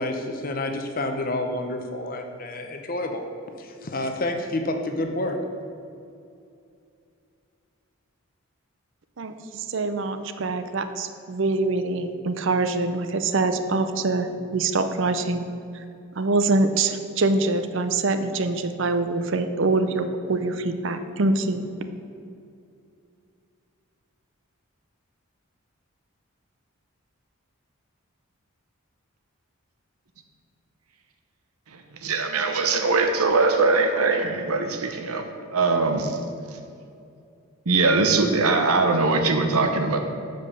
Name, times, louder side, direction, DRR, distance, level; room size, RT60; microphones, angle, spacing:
voice 1, 0.0-3.2 3.6-5.4, left 1 dB, 40° left, 5 dB, 0.7 m, -29 dB
voice 2, 9.2-15.5 15.7-15.8 16.2-21.7, right 3 dB, 60° right, 9 dB, 0.5 m, -24 dB
voice 3, 32.0-35.3 35.5-36.2 37.7-40.0, right 3 dB, 90° right, 5 dB, 0.9 m, -21 dB
7.4 x 5.2 x 6.7 m, 2.5 s
head